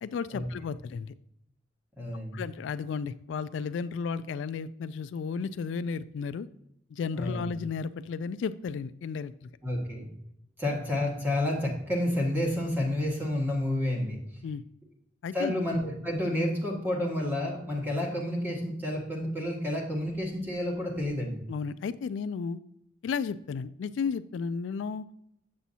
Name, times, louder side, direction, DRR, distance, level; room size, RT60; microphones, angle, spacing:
voice 1, 0.0-1.1 2.3-6.5 6.9-9.3 14.4-14.6 15.2-15.6 21.5-22.6 23.0-25.1, left 5 dB, 80° left, 13 dB, 0.3 m, -33 dB
voice 2, 2.0-2.4 7.2-7.4 9.6-10.1 10.6-14.2 15.3-21.4, left 1 dB, 10° right, -2 dB, 1.7 m, -30 dB
7.5 x 7.0 x 2.8 m, 0.76 s
head